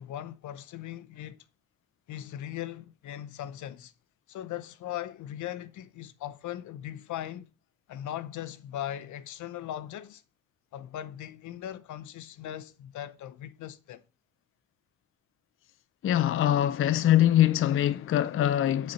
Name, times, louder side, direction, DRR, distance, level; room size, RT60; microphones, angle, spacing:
voice 1, 0.0-1.4 2.1-3.9 4.3-7.5 7.9-10.2 10.7-14.0, left 12 dB, 75° left, 0.8 m, -39 dB
voice 2, 16.0-18.9, left 12 dB, 45° left, 0.5 m, -23 dB
9.4 x 4.3 x 6.8 m
cardioid pair, 90°, 30 cm